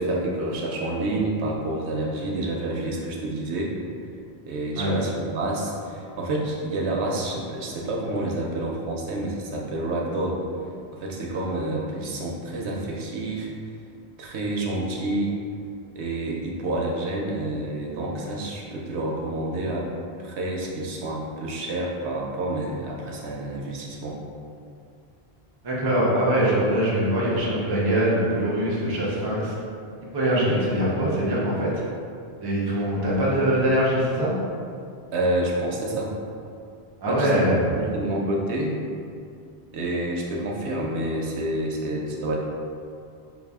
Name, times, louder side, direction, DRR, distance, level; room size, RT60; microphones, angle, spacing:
voice 1, 0.0-3.7 4.5-10.4 10.9-13.5 14.2-15.3 15.9-19.9 20.2-24.2 35.1-36.1 37.1-38.8 39.7-42.4, right 1 dB, 85° right, -2 dB, 0.9 m, -28 dB
voice 2, 25.6-29.5 30.1-31.8 32.4-34.3 37.0-37.7, right 1 dB, 25° right, -7 dB, 0.6 m, -23 dB
4.0 x 2.4 x 3.5 m, 2.4 s
omnidirectional pair, 1.1 m